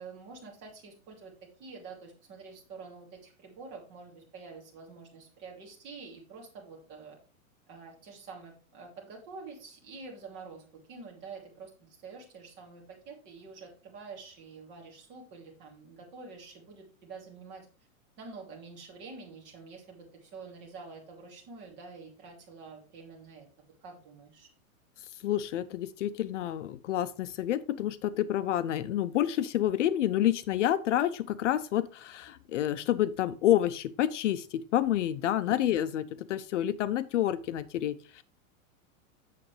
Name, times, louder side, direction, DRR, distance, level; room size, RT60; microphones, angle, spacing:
voice 1, 0.0-7.2 7.7-17.7 18.2-23.5 23.8-24.5 35.5-35.6, right 4 dB, 25° right, -1 dB, 2.6 m, -47 dB
voice 2, 25.2-38.2, left 12 dB, 60° left, 14 dB, 0.6 m, -29 dB
8.4 x 7.2 x 3.2 m, 0.37 s
supercardioid pair, 170°, 42 cm